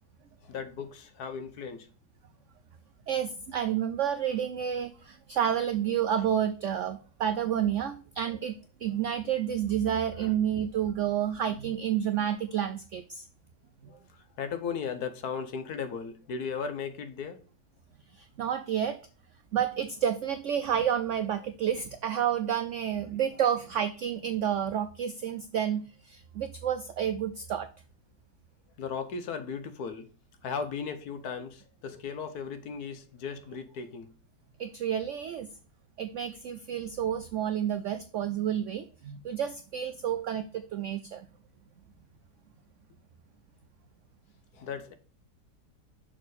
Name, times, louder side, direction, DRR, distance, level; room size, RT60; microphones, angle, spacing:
voice 1, 0.4-1.9 10.2-10.3 13.9-17.4 28.8-30.1 30.4-34.1 44.5-44.9, left 6 dB, 65° left, 1.3 m, -36 dB
voice 2, 3.1-8.5 8.8-13.3 18.2-19.0 19.5-27.7 34.6-35.5 36.0-41.3, right 9 dB, 85° right, 0.6 m, -30 dB
6.2 x 4.4 x 4.0 m
omnidirectional pair, 1.9 m